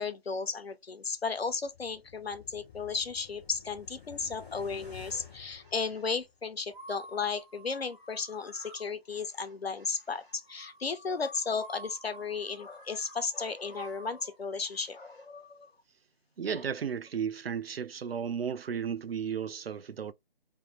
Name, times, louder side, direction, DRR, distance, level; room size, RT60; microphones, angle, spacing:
voice 1, 0.0-15.7 16.5-16.6, left 5 dB, 80° left, 0.8 m, -35 dB
sound 1, 1.3-6.5 6.9-7.0, left 7 dB, 5° right, 0.6 m, -52 dB
sound 2, 5.6-6.2 6.7-15.3, right 1 dB, 55° right, 1.6 m, -52 dB
voice 2, 16.4-20.1, right 7 dB, 75° right, 0.5 m, -34 dB
3.2 x 2.0 x 2.9 m
figure-of-eight pair, 155°, 30 cm